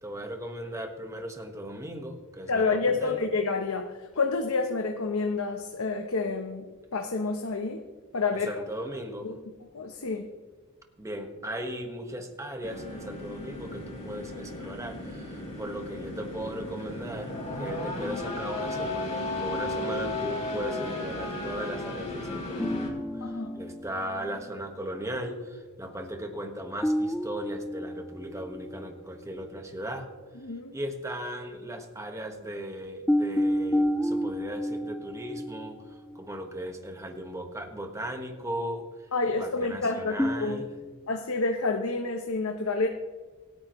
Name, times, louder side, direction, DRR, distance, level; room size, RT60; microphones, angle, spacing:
voice 1, 0.0-3.2 8.3-9.3 11.0-30.1 30.7-38.9 39.2-40.7, equal, 15° right, 4 dB, 1.5 m, -37 dB
voice 2, 2.5-6.7 6.9-7.8 8.1-8.5 9.2-9.3 9.7-10.2 23.2-23.5 30.4-30.8 39.1-40.6 41.1-42.9, left 3 dB, 70° left, 4 dB, 0.9 m, -28 dB
sound 1, 12.6-22.9, left 2 dB, 30° left, 4.0 m, -35 dB
sound 2, 22.6-24.6 26.8-28.9 29.3-29.5 33.1-36.2 40.2-40.9, equal, 5° left, 0.3 m, -30 dB
26.5 x 9.4 x 3.1 m, 1.4 s
head